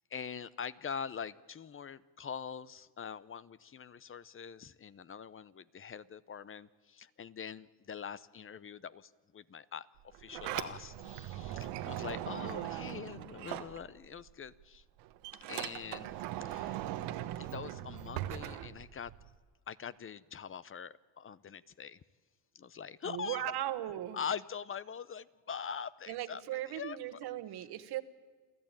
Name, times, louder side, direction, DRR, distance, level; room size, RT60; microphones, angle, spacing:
voice 1, 0.1-9.9 10.2-14.8 15.5-16.8 17.4-19.1 19.7-22.0 22.5-23.5 24.1-27.2 27.5-27.7, left 7 dB, 30° left, 17 dB, 0.8 m, -43 dB
Sliding door, 10.0-14.3 14.6-19.3, right 13 dB, 85° right, 1.3 m, -40 dB
voice 2, 12.4-13.0 23.1-24.2 26.1-28.0, right 13 dB, 70° right, 11 dB, 1.5 m, -38 dB
28.0 x 14.0 x 9.0 m, 1.4 s
supercardioid pair, 90°, 40 cm